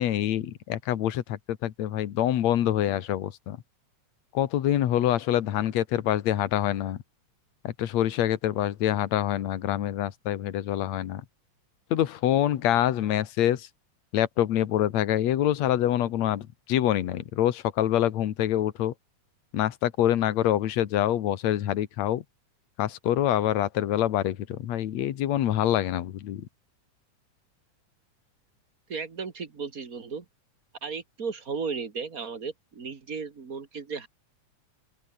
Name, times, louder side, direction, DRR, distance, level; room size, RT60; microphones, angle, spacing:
voice 1, 0.0-3.6 4.3-7.0 7.6-11.2 11.9-13.7 14.1-18.9 19.5-22.2 22.8-26.4, left 12 dB, 65° left, 2.5 m, -26 dB
voice 2, 28.9-30.3 30.8-34.1, right 5 dB, 30° right, 2.0 m, -35 dB
open air
omnidirectional pair, 3.5 m